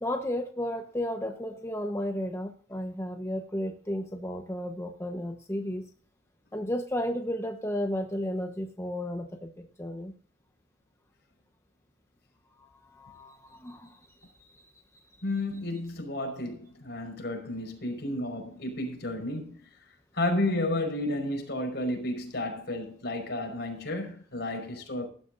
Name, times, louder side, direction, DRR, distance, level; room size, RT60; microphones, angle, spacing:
voice 1, 0.0-5.8 6.5-10.1 12.6-14.1 14.4-14.7 14.9-15.2, equal, 15° left, 1.1 m, -33 dB
voice 2, 15.2-19.6 20.1-25.1, left 1 dB, 55° left, 5.4 m, -32 dB
19.5 x 12.0 x 2.7 m
head